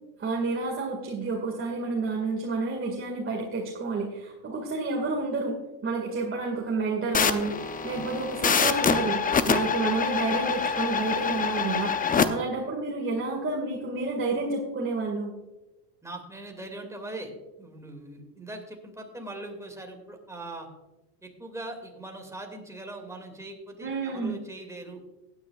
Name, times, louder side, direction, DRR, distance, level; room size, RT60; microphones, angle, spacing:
voice 1, 0.2-5.6 5.8-7.6 7.8-9.2 9.5-11.9 12.3-15.3 23.8-24.4, right 3 dB, 25° right, -2 dB, 2.1 m, -29 dB
sound 1, 7.1-12.3, left 6 dB, 20° left, 0.6 m, -26 dB
voice 2, 16.0-17.3 17.6-20.7 21.2-25.0, right 2 dB, 5° right, 2 dB, 2.4 m, -41 dB
16.5 x 9.6 x 2.5 m, 1.1 s
supercardioid pair, 105°, 49 cm